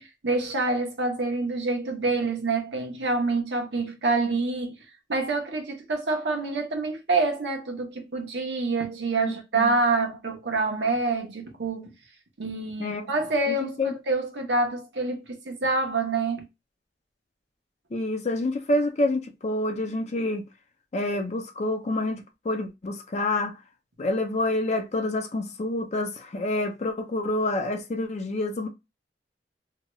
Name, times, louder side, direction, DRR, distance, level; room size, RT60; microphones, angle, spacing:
voice 1, 0.0-4.7 5.1-11.9 12.4-16.4, right 3 dB, 85° right, 0.9 m, -27 dB
voice 2, 9.2-9.7 12.8-13.0 13.5-13.9 17.9-20.4 20.9-23.5 24.0-28.7, left 2 dB, 40° left, 0.5 m, -28 dB
2.8 x 2.3 x 3.0 m
head